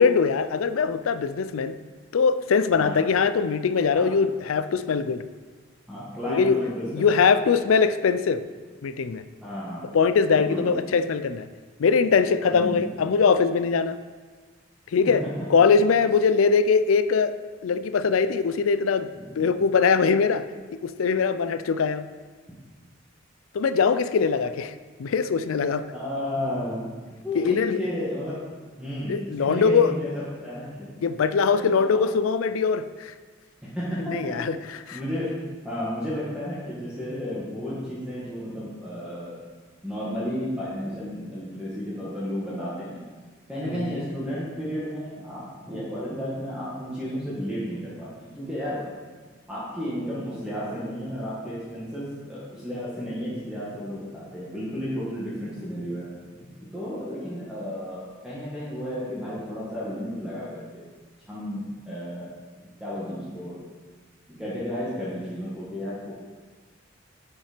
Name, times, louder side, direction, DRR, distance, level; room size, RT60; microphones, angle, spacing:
voice 1, 0.0-1.8 2.1-5.2 6.3-6.6 6.9-8.4 8.8-9.2 9.9-11.5 11.8-14.0 14.9-15.2 15.5-17.3 17.6-19.1 19.4-20.5 20.8-22.1 23.5-24.7 25.0-25.8 27.4-27.8 29.1-29.9 31.0-33.1 34.0-34.6 34.9-35.0 43.7-44.0, left 5 dB, 80° left, 13 dB, 0.4 m, -22 dB
voice 2, 5.9-7.0 9.4-9.9 10.3-10.9 12.5-12.8 15.1-15.3 19.1-19.4 25.9-26.8 27.2-28.3 28.8-31.0 31.5-32.1 33.6-34.3 34.7-35.4 35.6-39.4 39.8-43.0 43.5-48.8 49.5-60.8 61.2-62.3 62.6-63.6 64.3-66.1, equal, 5° right, -10 dB, 1.5 m, -33 dB
7.3 x 5.8 x 5.0 m, 1.4 s
head